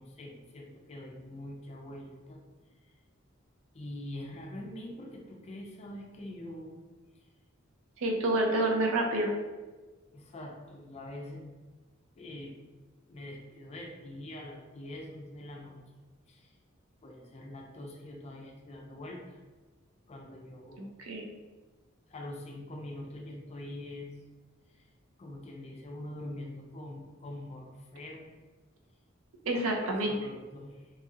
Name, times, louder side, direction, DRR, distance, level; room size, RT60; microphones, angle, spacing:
voice 1, 0.0-2.4 2.9-3.0 3.7-6.8 10.1-11.5 12.2-12.6 13.1-15.8 16.3-16.5 17.0-19.4 20.1-20.8 22.1-24.1 24.7-24.9 25.2-28.3 29.5-29.8 30.1-30.9, left 1 dB, 30° left, 1 dB, 0.4 m, -44 dB
voice 2, 8.0-9.3 20.8-21.3 29.5-30.1, right 1 dB, 75° right, 1 dB, 0.5 m, -28 dB
2.9 x 2.7 x 2.4 m, 1.3 s
head